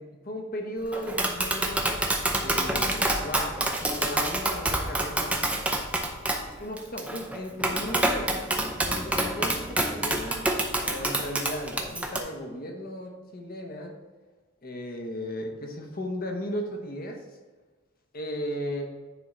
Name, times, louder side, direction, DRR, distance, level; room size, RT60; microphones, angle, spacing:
voice 1, 0.0-1.9 2.4-5.4 6.6-8.5 8.7-10.5 10.8-13.9 14.6-17.2 18.1-18.9, equal, 45° left, 2 dB, 1.1 m, -36 dB
Tap, 0.9-12.2, right 1 dB, 5° right, 0.6 m, -27 dB
9.4 x 3.7 x 4.2 m, 1.3 s
head